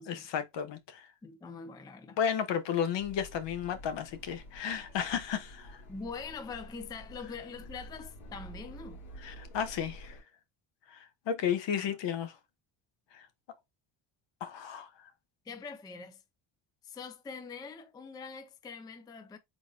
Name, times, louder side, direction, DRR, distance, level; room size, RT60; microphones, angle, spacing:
voice 1, 0.1-1.1 2.2-5.8 9.2-10.2 10.9-12.3 13.1-13.2 14.4-14.9, left 8 dB, 70° left, 0.9 m, -33 dB
voice 2, 1.2-2.2 5.9-9.0 11.7-12.0 15.4-16.2 16.8-19.4, left 5 dB, 10° left, 0.3 m, -44 dB
sound 1, 3.0-10.2, equal, 90° left, 2.2 m, -49 dB
3.9 x 3.7 x 2.4 m
cardioid pair, 120°, 46 cm